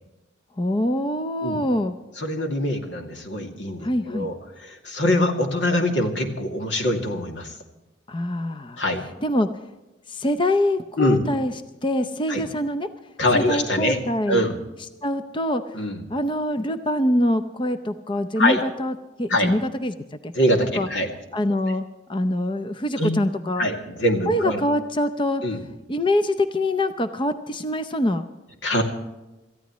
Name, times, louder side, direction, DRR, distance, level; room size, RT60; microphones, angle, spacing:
voice 1, 0.6-1.9 3.8-4.3 8.1-8.8 9.2-9.5 10.1-11.5 11.8-12.9 13.3-14.4 15.0-15.7 16.1-20.3 20.8-20.9 21.3-21.8 22.1-23.7 24.3-25.4 25.9-28.2, left 1 dB, 30° left, 9 dB, 0.6 m, -24 dB
voice 2, 2.2-7.5 8.8-9.0 11.0-11.2 12.3-12.4 13.2-14.0 14.3-14.6 15.7-16.0 18.4-18.6 19.3-19.5 20.3-21.1 23.0-23.2 23.6-24.6 25.4-25.6 28.6-28.8, left 1 dB, 85° left, 3 dB, 2.4 m, -23 dB
27.0 x 14.5 x 3.1 m, 1.1 s
head